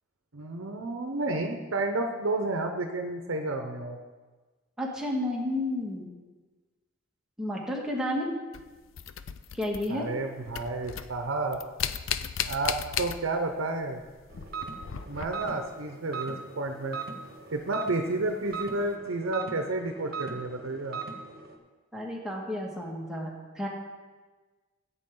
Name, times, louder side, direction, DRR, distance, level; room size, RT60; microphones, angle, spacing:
voice 1, 0.3-4.0 9.9-11.6 12.4-14.0 15.1-17.0 17.5-21.0, right 2 dB, 85° right, 4 dB, 0.8 m, -31 dB
voice 2, 4.8-6.1 7.4-8.3 9.5-10.1 21.9-23.7, left 1 dB, 5° right, -3 dB, 1.8 m, -31 dB
sound 1, 8.5-10.2 10.5-13.6 13.9-15.7 17.6-17.7 18.5-18.7, left 9 dB, 70° left, 0.5 m, -36 dB
sound 2, 14.3-21.6, right 5 dB, 50° right, 1.3 m, -40 dB
14.5 x 8.5 x 3.8 m, 1.3 s
head